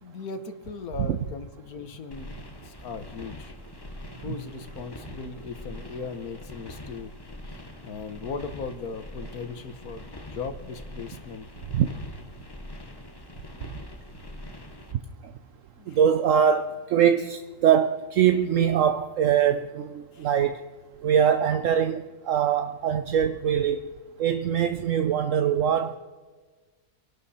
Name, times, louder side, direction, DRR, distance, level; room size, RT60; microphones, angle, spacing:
voice 1, 0.0-2.3 2.6-3.5 4.2-7.1 7.4-11.5 15.8-16.0 20.1-20.3, left 5 dB, 80° left, 10 dB, 1.6 m, -38 dB
sound 1, 2.1-14.9, left 1 dB, 20° left, 1.0 m, -43 dB
voice 2, 15.9-20.6 21.0-23.8 24.2-26.0, right 8 dB, 65° right, 10 dB, 1.0 m, -23 dB
26.5 x 12.0 x 4.2 m, 1.4 s
omnidirectional pair, 1.5 m